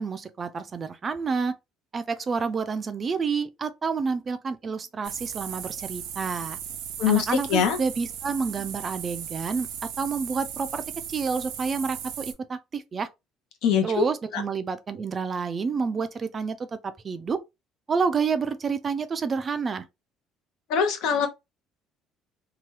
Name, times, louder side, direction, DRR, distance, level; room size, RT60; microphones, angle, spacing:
voice 1, 0.0-1.6 1.9-6.6 7.1-9.7 10.0-10.8 11.1-13.1 13.8-17.4 17.9-19.9, right 5 dB, 25° right, 0.3 m, -29 dB
sound 1, 5.0-12.3, right 8 dB, 80° right, 0.5 m, -37 dB
voice 2, 7.0-7.8 13.6-14.0 14.3-14.4 20.7-21.3, left 8 dB, 75° left, 0.7 m, -23 dB
2.8 x 2.2 x 3.0 m
cardioid pair, 165°, 0 cm